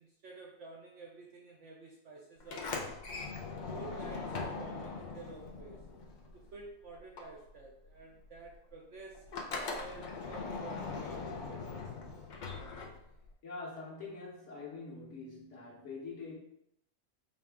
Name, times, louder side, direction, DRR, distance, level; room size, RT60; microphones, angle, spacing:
voice 1, 0.0-3.0 3.7-5.9 6.3-9.2 9.8-11.9, right 3 dB, 65° right, -1 dB, 0.8 m, -51 dB
Sliding door, 2.4-6.7 6.9-13.3, left 4 dB, 80° left, 0.4 m, -41 dB
voice 2, 13.4-16.4, left 4 dB, 55° left, -4 dB, 1.3 m, -44 dB
4.8 x 2.3 x 3.4 m, 0.75 s
omnidirectional pair, 1.6 m